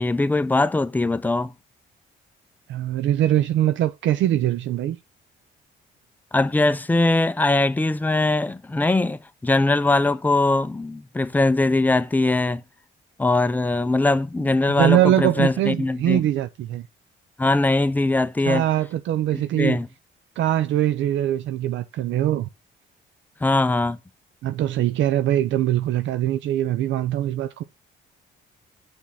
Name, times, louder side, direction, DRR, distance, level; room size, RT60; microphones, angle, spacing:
voice 1, 0.0-1.5 6.3-12.6 13.2-16.2 17.4-18.6 19.6-19.9 23.4-24.0, left 2 dB, 10° left, 0.5 m, -21 dB
voice 2, 2.7-5.0 14.8-16.9 18.4-19.8 20.4-22.5 24.4-27.6, right 12 dB, 75° right, 0.5 m, -22 dB
6.2 x 3.5 x 5.6 m
cardioid pair, 90°, 20 cm